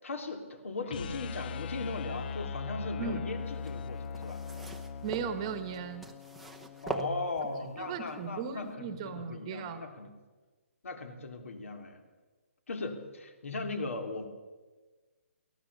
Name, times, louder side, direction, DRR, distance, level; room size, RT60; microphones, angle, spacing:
voice 1, 0.0-4.4 6.8-10.1 10.8-12.0 12.7-14.3, left 3 dB, 65° left, 6 dB, 3.6 m, -38 dB
sound 1, 0.8-6.9, left 5 dB, 40° left, 0.7 m, -40 dB
sound 2, 3.5-7.8 8.5-8.6, right 2 dB, ahead, 0.8 m, -42 dB
voice 2, 5.0-6.1 7.8-9.9, right 6 dB, 25° right, 10 dB, 1.3 m, -37 dB
23.0 x 17.5 x 7.0 m, 1.3 s
hypercardioid pair, 170°, 8 cm